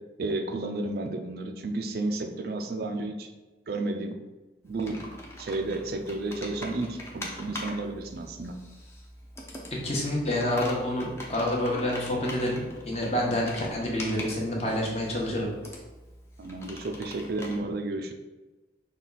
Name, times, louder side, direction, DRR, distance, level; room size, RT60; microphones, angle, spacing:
voice 1, 0.2-3.3 3.7-4.2 4.6-5.1 5.4-8.6 16.4-18.1, right 2 dB, 55° right, 5 dB, 0.4 m, -32 dB
Computer keyboard, 4.6-17.6, left 1 dB, 15° left, 0.6 m, -43 dB
voice 2, 9.7-15.5, left 1 dB, 35° left, -2 dB, 0.9 m, -28 dB
5.6 x 2.3 x 3.9 m, 1.1 s
head